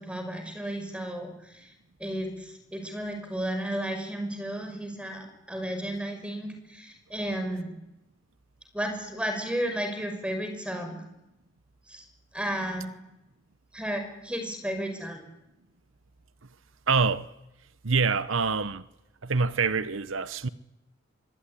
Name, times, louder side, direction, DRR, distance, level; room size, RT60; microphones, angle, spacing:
voice 1, 0.0-1.7 2.0-7.7 8.7-11.0 11.9-12.0 12.3-12.9 13.7-15.2, right 1 dB, 5° right, 5.7 m, -33 dB
voice 2, 16.9-17.3 17.8-18.9 19.2-20.5, right 4 dB, 80° right, 1.0 m, -25 dB
24.5 x 23.5 x 9.9 m
head